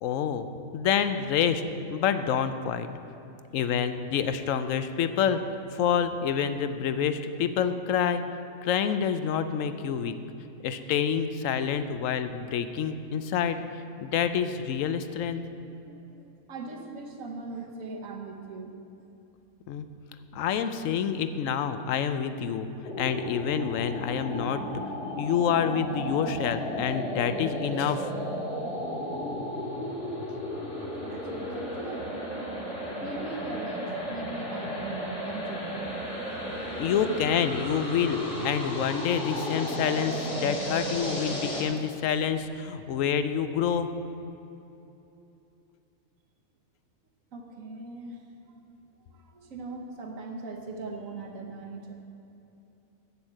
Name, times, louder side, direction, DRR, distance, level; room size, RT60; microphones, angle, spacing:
voice 1, 0.0-0.5 0.7-1.6 1.9-2.9 3.5-8.2 8.6-10.1 10.6-13.6 14.0-15.4 19.7-19.9 20.3-22.7 23.0-24.6 25.2-28.1 36.8-43.9, left 8 dB, 75° left, 10 dB, 0.9 m, -27 dB
voice 2, 15.8-18.7 31.0-36.0 47.3-48.2 48.5-48.6 49.1-51.9, right 3 dB, 70° right, 2 dB, 1.5 m, -40 dB
sound 1, 22.8-41.6, equal, 45° left, 2.0 m, -34 dB
8.0 x 7.1 x 7.6 m, 2.9 s
omnidirectional pair, 1.4 m